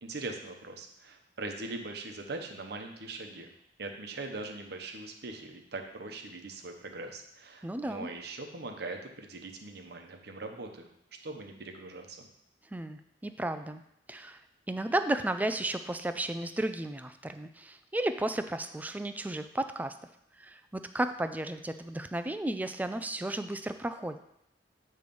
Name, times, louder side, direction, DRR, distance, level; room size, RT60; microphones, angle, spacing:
voice 1, 0.0-3.5 3.8-10.9 11.2-12.3, right 2 dB, 65° right, 4 dB, 0.9 m, -41 dB
voice 2, 7.6-8.1 12.7-13.8 14.1-14.4 14.7-19.9 20.4-24.2, right 1 dB, 10° right, 9 dB, 0.3 m, -33 dB
8.5 x 3.2 x 5.3 m, 0.76 s
head